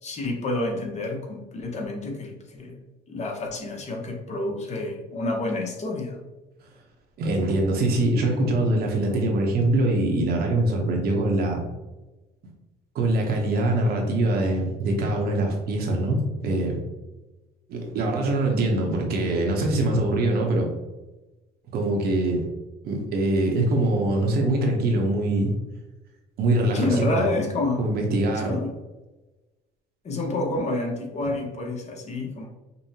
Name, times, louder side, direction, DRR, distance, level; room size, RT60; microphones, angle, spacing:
voice 1, 0.0-2.7 3.1-6.2 26.7-27.8 28.5-28.7 30.0-32.5, left 2 dB, 40° left, 2 dB, 0.8 m, -29 dB
voice 2, 7.2-11.6 12.9-16.8 17.7-20.7 21.7-22.5 22.8-25.5 26.4-27.3 27.8-28.5, right 1 dB, 65° right, 1 dB, 0.9 m, -23 dB
5.3 x 2.1 x 2.8 m, 1.1 s
cardioid pair, 110°, 17 cm